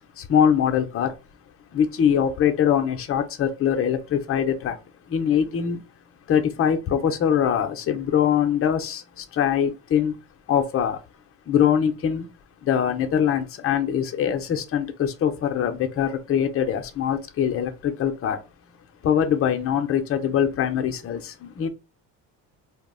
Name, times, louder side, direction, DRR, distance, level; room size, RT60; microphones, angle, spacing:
voice 1, 0.2-1.1 1.7-4.8 5.1-5.9 6.3-10.2 10.5-11.0 11.5-12.3 12.6-18.4 19.0-21.7, left 8 dB, 35° left, 0.4 m, -23 dB
2.4 x 2.0 x 3.5 m
cardioid pair, 115°, 44 cm